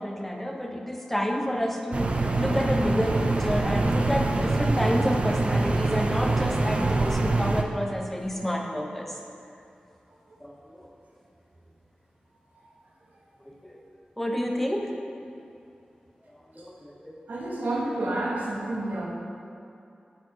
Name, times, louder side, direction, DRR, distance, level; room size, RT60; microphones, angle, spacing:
voice 1, 0.0-9.2 10.4-10.9 13.5-13.8 14.2-14.9 16.5-17.1, equal, 5° left, 1 dB, 0.9 m, -29 dB
sound 1, 1.9-7.6, right 2 dB, 40° right, 0.6 m, -25 dB
voice 2, 17.3-19.1, right 2 dB, 75° right, -4 dB, 1.6 m, -29 dB
9.5 x 5.1 x 5.2 m, 2.6 s
wide cardioid pair, 100°, 3 cm